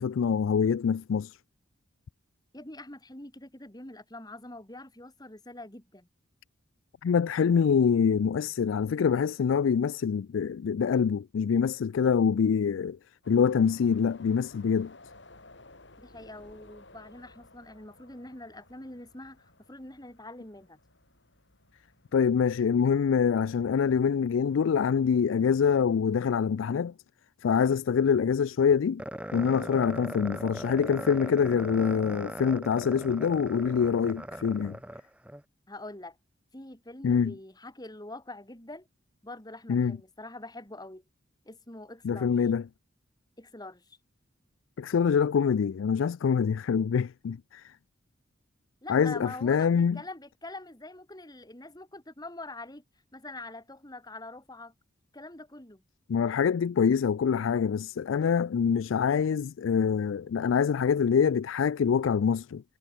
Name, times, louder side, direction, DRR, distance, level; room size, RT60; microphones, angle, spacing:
voice 1, 0.0-1.4 7.0-13.0 13.3-15.0 22.1-26.9 27.4-29.0 29.3-34.8 37.0-37.3 39.7-40.0 42.0-42.6 44.8-47.7 48.9-50.0 56.1-62.6, left 6 dB, 80° left, 0.4 m, -25 dB
voice 2, 2.5-6.1 16.0-20.8 35.7-36.2 36.5-38.9 39.2-41.0 41.4-42.3 43.4-44.0 48.8-52.8 53.1-54.7 55.1-55.8, left 2 dB, 20° left, 3.1 m, -44 dB
sound 1, 13.2-26.0, left 2 dB, 65° left, 7.0 m, -57 dB
sound 2, 29.0-35.4, right 1 dB, 5° right, 1.2 m, -40 dB
head